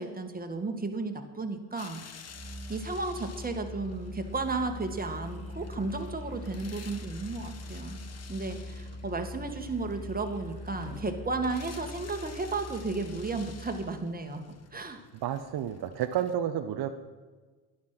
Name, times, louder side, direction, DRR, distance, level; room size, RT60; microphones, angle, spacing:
voice 1, 0.0-2.0 2.7-8.0 8.3-14.4 14.7-15.0, right 3 dB, 20° right, 5 dB, 2.1 m, -34 dB
sound 1, 1.8-16.3, left 6 dB, 35° left, 1.2 m, -51 dB
Musical instrument, 2.3-14.0, left 1 dB, 15° left, 4.5 m, -42 dB
sound 2, 6.0-12.2, left 2 dB, 85° left, 4.5 m, -56 dB
voice 2, 15.2-16.9, right 10 dB, 50° right, 6 dB, 1.0 m, -30 dB
12.0 x 10.5 x 6.0 m, 1.3 s
hypercardioid pair, 70°, 47 cm